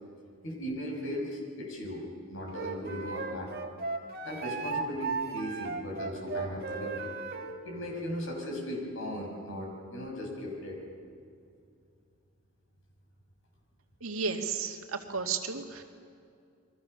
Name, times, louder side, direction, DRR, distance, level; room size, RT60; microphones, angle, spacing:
voice 1, 0.4-3.7 4.2-7.1 7.6-10.8, left 1 dB, 65° left, 0 dB, 6.4 m, -37 dB
Wind instrument woodwind instrument, 2.5-7.6, right 4 dB, 45° right, 1.8 m, -36 dB
voice 2, 14.0-15.8, right 5 dB, 75° right, 3 dB, 2.2 m, -33 dB
29.0 x 23.0 x 6.8 m, 2.4 s
head